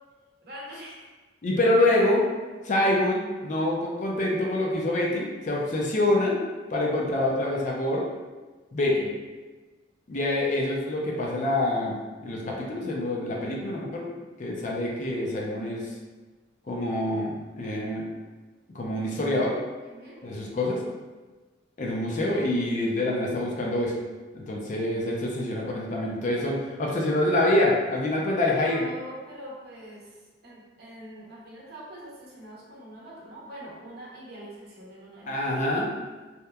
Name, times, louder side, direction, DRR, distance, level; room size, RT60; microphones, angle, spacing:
voice 1, 0.4-1.0 8.8-9.1 19.8-20.2 28.4-35.7, right 1 dB, 60° right, -5 dB, 0.7 m, -44 dB
voice 2, 1.4-2.2 2.6-6.4 6.7-8.1 8.7-9.1 10.1-14.1 14.4-15.8 16.7-18.0 18.7-19.5 20.2-20.8 21.8-23.9 24.3-28.9 35.3-35.9, left 1 dB, 45° left, -2 dB, 0.4 m, -26 dB
2.8 x 2.1 x 2.3 m, 1.3 s
head